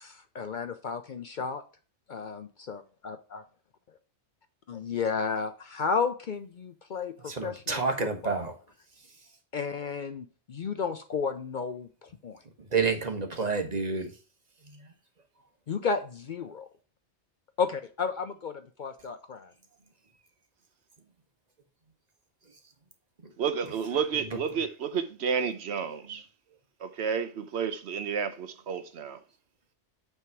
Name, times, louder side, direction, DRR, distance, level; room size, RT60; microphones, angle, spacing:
voice 1, 0.0-1.6 2.1-3.4 4.7-8.5 9.5-12.4 15.7-16.7 17.6-19.5, left 5 dB, 55° left, 0.6 m, -33 dB
voice 2, 7.3-8.5 12.7-14.1 14.6-14.9, right 4 dB, 40° right, 1.3 m, -29 dB
voice 3, 23.4-26.3 26.8-29.2, right 6 dB, 70° right, 1.0 m, -31 dB
8.4 x 3.5 x 4.6 m
omnidirectional pair, 1.1 m